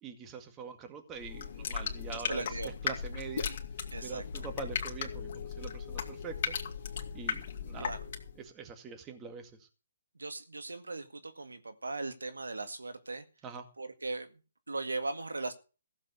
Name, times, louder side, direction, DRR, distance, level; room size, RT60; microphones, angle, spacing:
voice 1, 0.0-3.5 4.0-6.6 7.1-8.0 8.4-9.7 13.4-13.7, right 6 dB, 20° right, 2.0 m, -44 dB
sound 1, 1.1-8.4, left 6 dB, 50° left, 2.4 m, -37 dB
voice 2, 2.1-2.7 3.9-4.2 7.8-8.0 10.2-13.2 13.8-14.3 14.7-15.5, right 3 dB, 90° right, 1.9 m, -38 dB
15.5 x 7.4 x 6.8 m
hypercardioid pair, 145°, 0 cm